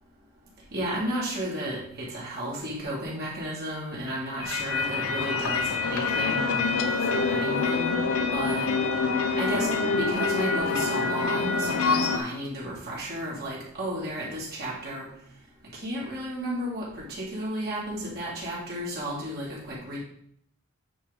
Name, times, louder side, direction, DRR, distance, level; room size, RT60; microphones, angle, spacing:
voice 1, 0.7-6.7 7.1-8.0 8.3-8.7 9.4-15.0 15.7-20.0, right 1 dB, 45° right, -6 dB, 2.2 m, -33 dB
sound 1, 4.4-12.2, left 4 dB, 80° left, 0.8 m, -26 dB
8.6 x 3.8 x 5.1 m, 0.67 s
head